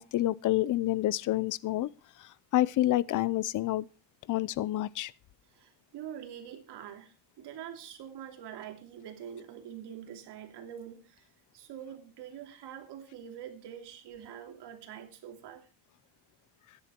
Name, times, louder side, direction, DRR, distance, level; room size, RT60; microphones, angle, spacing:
voice 1, 0.0-1.9 2.5-3.9 4.3-5.1, left 15 dB, 40° left, 0.6 m, -28 dB
voice 2, 5.4-15.7, right 9 dB, 55° right, 2.9 m, -45 dB
14.0 x 10.5 x 4.4 m
cardioid pair, 150°, 48 cm